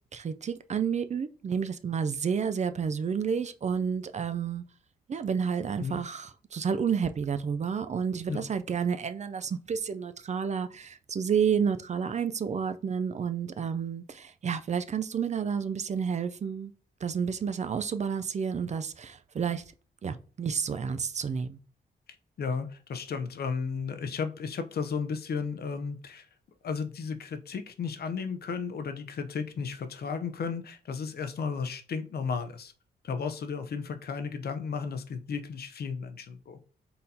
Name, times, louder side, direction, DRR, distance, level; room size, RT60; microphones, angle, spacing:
voice 1, 0.1-4.6 5.1-16.7 17.0-19.6 20.0-21.6, right 6 dB, 40° right, 0.4 m, -30 dB
voice 2, 22.4-26.3 26.6-32.7 33.0-36.6, left 5 dB, 60° left, 0.6 m, -34 dB
4.2 x 3.8 x 2.7 m
cardioid pair, 70°, 18 cm